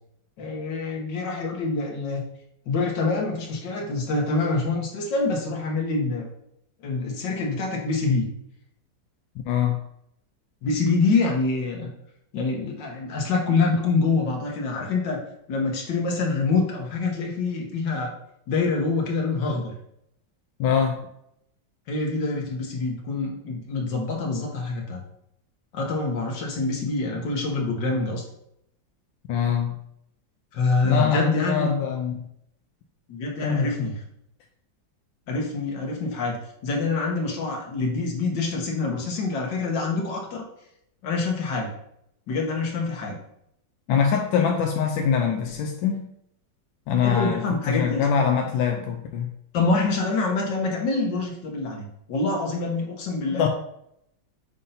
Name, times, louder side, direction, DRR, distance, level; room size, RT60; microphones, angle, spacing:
voice 1, 0.4-2.2 2.7-6.3 6.8-8.3 10.6-11.9 12.3-15.2 15.5-18.1 18.5-19.7 21.9-25.0 25.7-28.2 30.5-31.7 33.1-33.9 35.3-36.4 36.6-40.5 41.0-41.7 42.3-43.2 47.0-48.1 49.5-53.4, left 3 dB, 70° left, 0 dB, 1.9 m, -26 dB
voice 2, 9.5-9.8 20.6-21.1 29.3-29.7 30.8-32.2 33.4-33.9 43.9-46.1 46.9-49.3 53.3-53.5, left 7 dB, 85° left, 2 dB, 1.4 m, -23 dB
6.6 x 2.7 x 5.6 m, 0.75 s
omnidirectional pair, 2.1 m